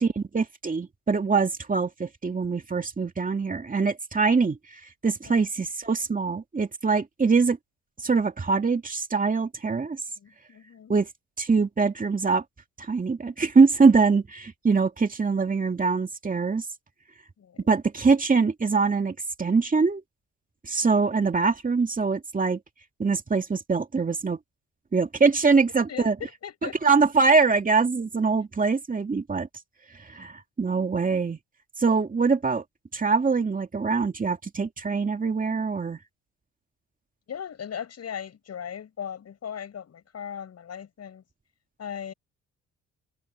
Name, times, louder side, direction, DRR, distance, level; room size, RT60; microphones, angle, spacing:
voice 1, 0.0-7.6 8.0-10.0 10.9-11.1 11.4-12.4 12.8-16.6 17.7-20.0 20.6-22.6 23.0-24.4 24.9-26.2 26.6-29.5 29.9-31.4 31.8-32.6 32.9-36.0, right 4 dB, 25° right, 2.5 m, -23 dB
voice 2, 10.2-10.9 17.4-17.7 25.9-26.1 26.4-26.9 37.3-41.2 41.8-42.1, left 8 dB, 55° left, 7.9 m, -38 dB
cardioid pair, 90°, 30 cm